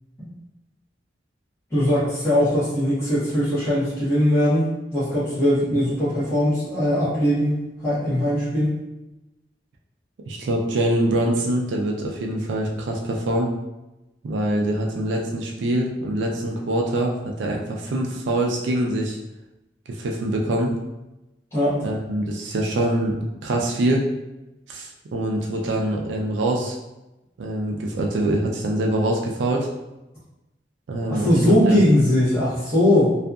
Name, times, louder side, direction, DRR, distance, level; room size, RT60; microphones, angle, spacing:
voice 1, 1.7-4.7 4.9-8.7 21.5-21.9 31.1-33.1, left 1 dB, 15° left, -13 dB, 0.9 m, -20 dB
voice 2, 10.2-13.5 14.2-19.2 19.9-20.7 21.8-24.0 24.7-26.8 27.4-29.7 30.9-31.8, right 1 dB, 80° right, 0 dB, 0.4 m, -24 dB
2.6 x 2.4 x 2.3 m, 0.99 s
head